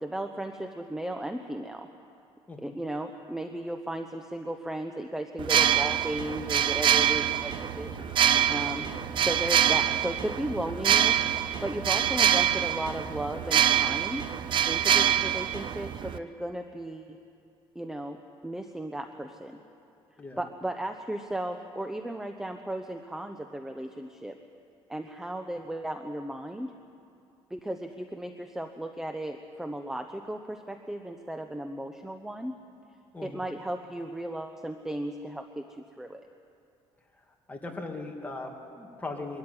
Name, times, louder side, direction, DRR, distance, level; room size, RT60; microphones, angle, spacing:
voice 1, 0.0-1.9 2.6-8.0 8.5-8.9 9.2-11.2 11.6-14.3 14.7-17.2 17.7-18.2 18.4-19.6 20.4-24.4 24.9-26.7 27.5-32.6 33.2-36.2, right 1 dB, 5° right, 6 dB, 0.8 m, -35 dB
sound 1, 5.4-16.2, right 10 dB, 50° right, 0.6 m, -25 dB
sound 2, 5.5-16.2, left 2 dB, 80° right, 3.0 m, -49 dB
voice 2, 37.5-39.4, left 2 dB, 15° left, 1 dB, 2.5 m, -39 dB
23.5 x 13.5 x 9.8 m, 2.6 s
cardioid pair, 125°, 11 cm